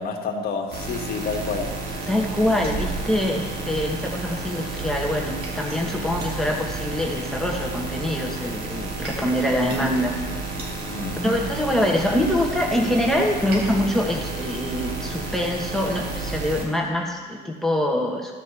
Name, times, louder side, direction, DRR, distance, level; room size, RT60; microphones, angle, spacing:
voice 1, 0.0-1.7 10.9-11.2, left 5 dB, 65° left, 2 dB, 1.6 m, -29 dB
sound 1, 0.7-16.7, right 3 dB, 65° right, 2.1 m, -31 dB
voice 2, 2.1-10.1 11.2-18.4, left 1 dB, ahead, 0 dB, 1.3 m, -24 dB
13.5 x 5.1 x 7.3 m, 1.4 s
cardioid pair, 110°, 17 cm